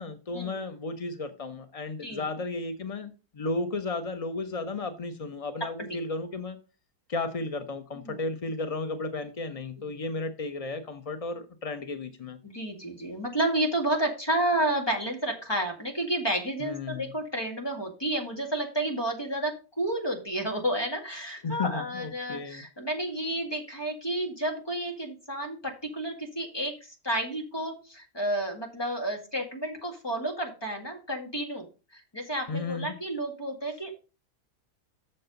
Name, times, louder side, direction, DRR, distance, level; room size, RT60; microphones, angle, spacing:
voice 1, 0.0-6.6 7.1-12.4 16.6-17.1 21.3-22.6 32.5-33.0, left 3 dB, 55° left, 0.4 m, -34 dB
voice 2, 12.4-26.8 27.0-31.6 31.9-33.9, right 1 dB, 15° left, 2.0 m, -31 dB
7.5 x 6.7 x 5.2 m
omnidirectional pair, 1.8 m